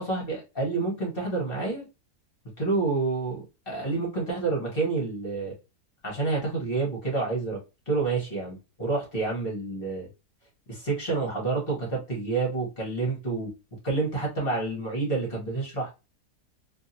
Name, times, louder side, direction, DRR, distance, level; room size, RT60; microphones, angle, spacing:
voice 1, 0.0-1.9 2.6-5.5 6.0-7.6 7.9-10.1 10.7-13.5 13.8-15.9, right 3 dB, 40° left, -2 dB, 1.2 m, -28 dB
2.8 x 2.7 x 2.5 m, 0.27 s
omnidirectional pair, 1.7 m